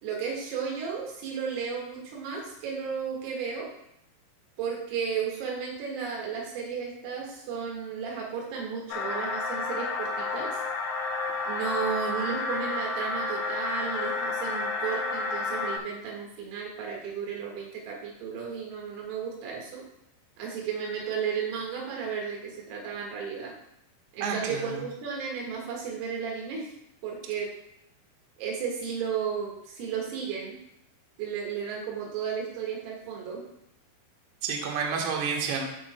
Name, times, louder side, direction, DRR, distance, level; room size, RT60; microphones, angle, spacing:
voice 1, 0.0-3.7 4.6-10.5 11.5-19.8 20.4-23.5 24.1-26.7 27.0-27.5 28.4-30.6 31.2-33.5, right 6 dB, 90° right, -2 dB, 4.5 m, -34 dB
sound 1, 8.9-15.8, left 3 dB, 70° left, 2.9 m, -31 dB
voice 2, 24.2-24.8 34.4-35.7, right 5 dB, 65° right, -1 dB, 2.8 m, -30 dB
16.0 x 6.1 x 2.2 m, 0.79 s
omnidirectional pair, 5.7 m